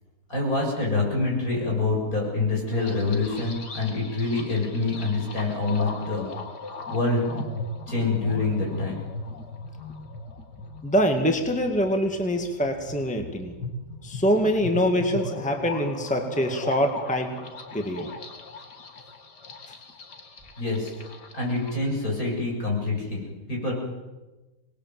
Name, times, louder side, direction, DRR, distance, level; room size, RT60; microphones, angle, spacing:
voice 1, 0.3-6.3 6.9-7.2 7.9-9.0 20.6-20.9 21.3-23.2 23.5-23.7, left 3 dB, 60° left, -1 dB, 8.0 m, -26 dB
sound 1, 2.7-21.8, left 3 dB, 85° left, 2.5 m, -38 dB
voice 2, 10.8-13.5 14.0-17.4 17.7-18.1, equal, 5° left, 4 dB, 1.9 m, -24 dB
26.5 x 20.0 x 7.7 m, 1.2 s
omnidirectional pair, 1.7 m